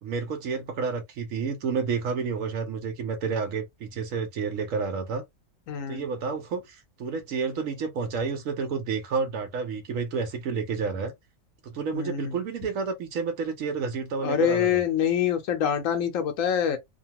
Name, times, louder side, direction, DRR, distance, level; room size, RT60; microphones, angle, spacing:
voice 1, 0.0-5.2 5.9-11.1 11.6-14.8, right 5 dB, 85° right, 1.1 m, -30 dB
voice 2, 5.7-6.1 11.9-12.3 14.2-16.8, left 8 dB, 80° left, 1.1 m, -25 dB
2.7 x 2.3 x 2.8 m
omnidirectional pair, 1.3 m